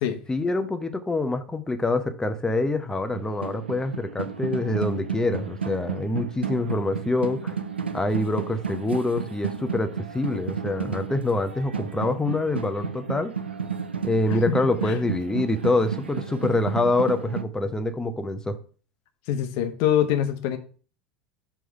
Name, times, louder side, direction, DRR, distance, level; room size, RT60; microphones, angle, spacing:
voice 1, 0.3-7.6 7.9-13.3 14.0-18.6, left 2 dB, 10° left, 8 dB, 0.8 m, -25 dB
sound 1, 2.9-17.4, right 6 dB, 85° right, 0.5 m, -33 dB
voice 2, 19.3-20.6, left 10 dB, 55° left, 7 dB, 0.9 m, -24 dB
6.2 x 3.5 x 5.8 m, 0.39 s
figure-of-eight pair, 75°, 6 cm